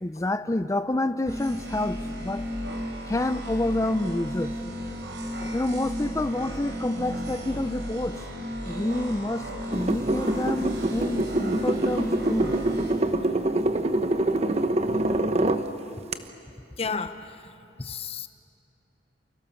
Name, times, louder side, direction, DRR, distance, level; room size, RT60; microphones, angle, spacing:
voice 1, 0.0-2.4 3.1-4.5 5.5-8.2 8.6-12.5, left 1 dB, 15° left, 0.6 m, -28 dB
sound 1, 1.3-12.9, equal, 70° right, 5.0 m, -34 dB
sound 2, 3.9-15.0, right 4 dB, 15° right, 7.9 m, -53 dB
sound 3, 9.7-15.6 16.1-16.2, right 1 dB, 35° right, 1.0 m, -25 dB
voice 2, 16.8-17.4 17.8-18.3, left 5 dB, 35° left, 1.0 m, -33 dB
29.0 x 28.5 x 7.2 m
head